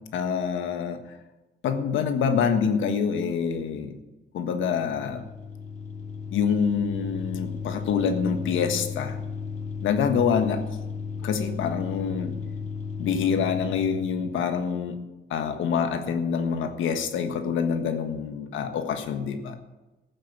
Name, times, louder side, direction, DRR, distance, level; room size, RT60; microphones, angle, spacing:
voice 1, 0.1-1.0 1.6-4.0 4.3-5.2 6.3-9.2 9.8-10.6 11.2-12.3 13.0-15.0 15.3-19.5, left 6 dB, 80° left, 7 dB, 1.5 m, -26 dB
sound 1, 4.7-14.5, left 5 dB, 40° left, 2.9 m, -35 dB
13.0 x 7.6 x 7.3 m, 1.1 s
cardioid pair, 90°, 20 cm